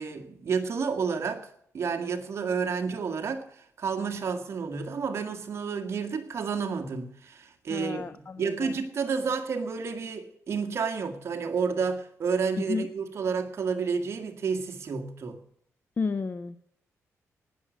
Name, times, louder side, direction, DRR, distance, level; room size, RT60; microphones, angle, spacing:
voice 1, 0.0-15.4, right 5 dB, 50° right, 1.8 m, -30 dB
voice 2, 7.7-8.7 12.7-12.9 16.0-16.6, left 4 dB, 35° left, 0.7 m, -32 dB
18.5 x 6.3 x 8.1 m
cardioid pair, 110°, 6 cm